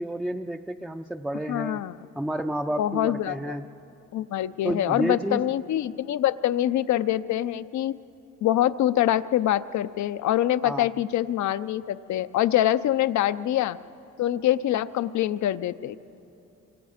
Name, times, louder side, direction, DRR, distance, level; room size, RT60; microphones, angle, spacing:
voice 1, 0.0-1.8 2.2-3.7 4.6-5.4 10.6-10.9, right 1 dB, 5° right, 4 dB, 0.5 m, -30 dB
voice 2, 1.5-1.9 2.8-3.6 4.1-8.0 8.4-13.8 14.2-16.0, left 12 dB, 70° left, 14 dB, 0.7 m, -25 dB
26.5 x 25.0 x 5.0 m, 2.9 s
cardioid pair, 90°, 30 cm